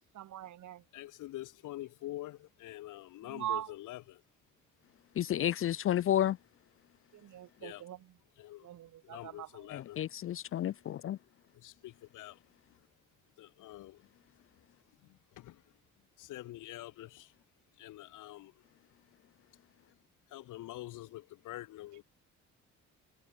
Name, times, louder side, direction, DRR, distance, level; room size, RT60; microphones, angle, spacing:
voice 1, 0.1-0.8 3.2-3.7 7.1-8.0 8.6-9.5, right 12 dB, 75° right, 2.6 m, -41 dB
voice 2, 0.9-4.2 7.6-7.8 8.4-8.7 9.0-10.0 11.5-12.4 13.4-14.1 15.0-15.8 16.2-17.3 17.8-18.5 20.3-22.0, left 16 dB, 90° left, 2.6 m, -46 dB
voice 3, 5.2-6.4 9.7-11.2, left 11 dB, 45° left, 0.4 m, -31 dB
cardioid pair, 90°, 30 cm